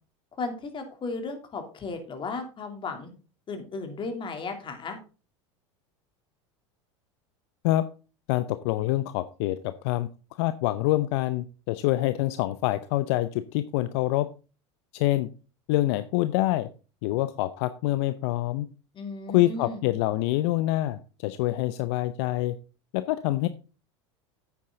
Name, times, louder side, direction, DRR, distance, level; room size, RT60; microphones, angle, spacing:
voice 1, 0.4-3.1 3.5-5.0 18.9-19.8, left 3 dB, 35° left, 6 dB, 3.1 m, -35 dB
voice 2, 8.3-10.1 10.4-14.3 14.9-15.3 15.7-16.7 17.0-18.7 19.3-22.6 22.9-23.5, left 16 dB, 65° left, 13 dB, 0.7 m, -26 dB
9.5 x 8.5 x 3.9 m, 0.34 s
hypercardioid pair, 90°, 15 cm